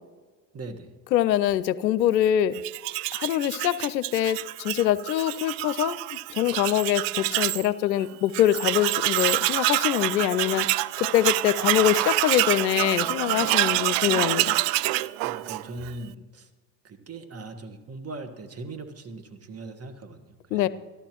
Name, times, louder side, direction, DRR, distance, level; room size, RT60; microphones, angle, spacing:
voice 1, 0.5-0.9 15.2-16.5 16.8-20.7, right 2 dB, 30° right, 8 dB, 1.4 m, -40 dB
voice 2, 1.1-2.6 3.1-10.7 11.0-14.6 20.5-20.7, left 12 dB, 90° left, 16 dB, 0.6 m, -24 dB
Tools, 2.5-7.7 8.0-8.1 8.3-15.9, right 18 dB, 55° right, 0.5 m, -26 dB
13.5 x 13.0 x 3.0 m, 1.4 s
hypercardioid pair, 70°, 50 cm